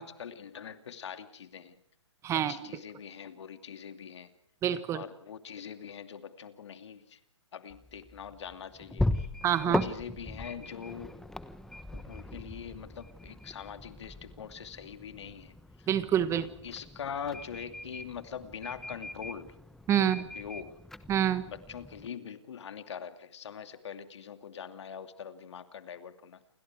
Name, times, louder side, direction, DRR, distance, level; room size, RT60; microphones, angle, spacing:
voice 1, 0.0-1.8 2.5-4.3 4.9-7.2 7.5-9.3 9.6-11.1 11.9-15.9 16.3-19.5 20.0-20.8 21.5-26.4, left 7 dB, 70° left, 9 dB, 2.6 m, -43 dB
voice 2, 2.2-2.7 4.6-5.0 9.4-9.8 15.9-16.5 19.9-20.2 21.1-21.4, right 10 dB, 20° right, 14 dB, 1.2 m, -27 dB
sound 1, 7.7-22.1, left 1 dB, 5° left, 1.0 m, -39 dB
29.0 x 24.5 x 4.8 m, 0.71 s
hypercardioid pair, 140°, 15 cm